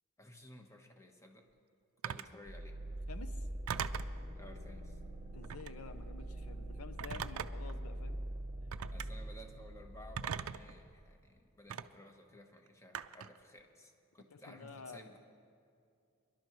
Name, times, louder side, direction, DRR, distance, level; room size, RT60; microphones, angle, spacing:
voice 1, 0.2-1.4 2.0-2.7 4.4-5.0 8.9-15.2, equal, 15° left, 3 dB, 1.1 m, -56 dB
Telephone, 2.0-2.4 3.7-4.2 5.4-5.8 7.0-7.7 8.7-9.1 10.2-10.7 11.7-11.8 12.9-13.4, right 8 dB, 80° right, 0.4 m, -40 dB
sound 1, 2.5-11.2, right 1 dB, 30° right, 1.1 m, -44 dB
voice 2, 3.1-3.5 5.3-8.2 8.9-9.0 14.3-15.1, left 4 dB, 80° left, 10 dB, 0.7 m, -50 dB
26.5 x 11.5 x 3.1 m, 2.4 s
head